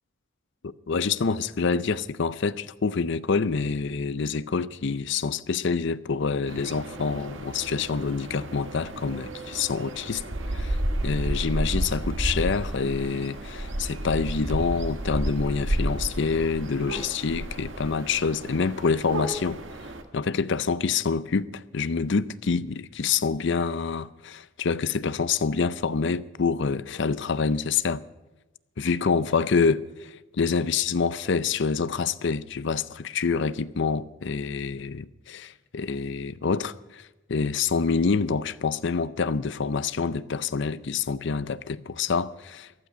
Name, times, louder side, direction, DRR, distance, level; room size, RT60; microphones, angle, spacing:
voice 1, 0.6-10.2 10.5-10.8 11.0-19.6 20.1-28.0 28.8-37.0 37.3-42.7, left 5 dB, 60° left, 0.5 m, -27 dB
sound 1, 6.5-20.0, right 1 dB, 65° right, 1.4 m, -32 dB
15.0 x 12.0 x 6.2 m
head